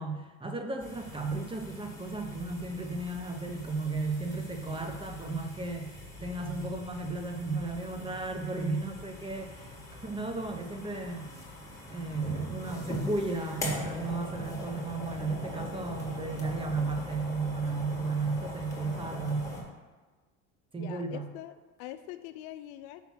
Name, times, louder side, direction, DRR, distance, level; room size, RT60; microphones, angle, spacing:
voice 1, 0.0-11.3 11.9-19.5 20.7-21.2, right 3 dB, 15° right, 5 dB, 0.7 m, -34 dB
sound 1, 0.8-19.6, left 1 dB, 10° left, 1.7 m, -41 dB
voice 2, 20.7-21.5 21.8-23.0, left 13 dB, 70° left, 10 dB, 0.6 m, -43 dB
5.8 x 3.9 x 5.9 m, 1.3 s
supercardioid pair, 100°, 38 cm